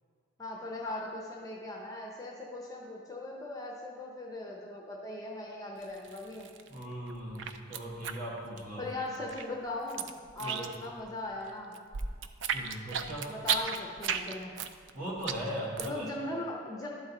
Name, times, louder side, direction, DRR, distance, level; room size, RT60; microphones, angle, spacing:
voice 1, 0.4-6.5 8.8-10.1 10.3-11.7 13.3-14.5 15.8-16.9, left 2 dB, 15° left, -2 dB, 0.6 m, -39 dB
sound 1, 5.8-6.8 7.1-8.9 9.1-11.0 11.3-16.1, right 7 dB, 60° right, 0.4 m, -34 dB
voice 2, 6.7-8.8 10.4-10.7 12.5-13.3 14.9-16.1, equal, 40° right, -4 dB, 1.6 m, -39 dB
12.0 x 3.9 x 4.0 m, 2.1 s
head